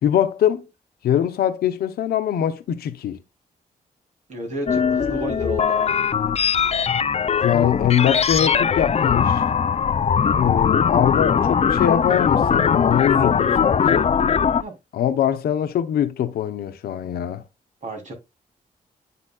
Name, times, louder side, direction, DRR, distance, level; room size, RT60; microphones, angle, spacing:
voice 1, 0.0-0.6 1.0-3.2 7.4-9.4 10.3-14.1 14.9-17.4, left 10 dB, 90° left, 0.8 m, -22 dB
voice 2, 4.3-6.0 14.6-14.8 17.8-18.1, right 2 dB, 50° right, 3.3 m, -32 dB
sound 1, 4.7-14.6, left 7 dB, 45° left, 0.5 m, -20 dB
11.0 x 4.1 x 2.3 m
cardioid pair, 75°, 15 cm